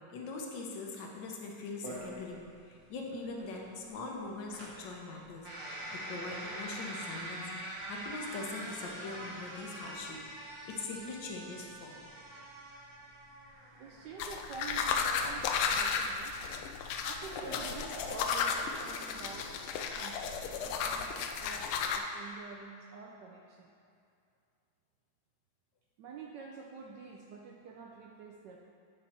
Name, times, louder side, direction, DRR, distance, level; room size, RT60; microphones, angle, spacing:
voice 1, 0.1-10.2 10.5-12.1, left 3 dB, 65° left, 0 dB, 1.5 m, -42 dB
sound 1, 1.8-18.1, right 1 dB, 50° right, 1.8 m, -45 dB
voice 2, 13.7-16.4 17.0-19.6 19.9-21.7 22.0-23.7 26.0-28.6, right 5 dB, 75° right, 0 dB, 1.0 m, -48 dB
sound 2, 14.2-22.0, left 6 dB, 90° left, 1.5 m, -34 dB
8.9 x 5.3 x 4.4 m, 2.4 s
omnidirectional pair, 2.3 m